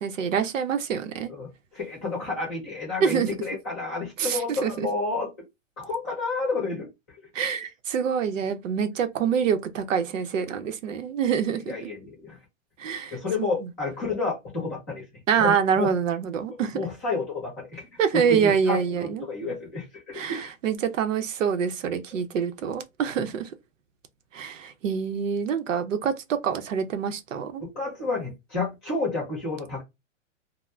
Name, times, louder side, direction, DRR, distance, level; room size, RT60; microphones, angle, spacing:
voice 1, 0.0-1.3 3.0-3.3 4.2-4.9 7.3-11.8 12.8-13.5 15.3-16.8 18.0-19.2 20.1-23.5 24.3-27.6, right 7 dB, 80° right, 0.7 m, -26 dB
voice 2, 1.7-5.3 5.8-6.9 11.7-12.4 13.1-15.0 15.4-15.9 16.7-17.9 18.1-20.5 27.6-29.8, left 3 dB, 10° left, 0.6 m, -30 dB
2.4 x 2.1 x 3.1 m
hypercardioid pair, 180°, 38 cm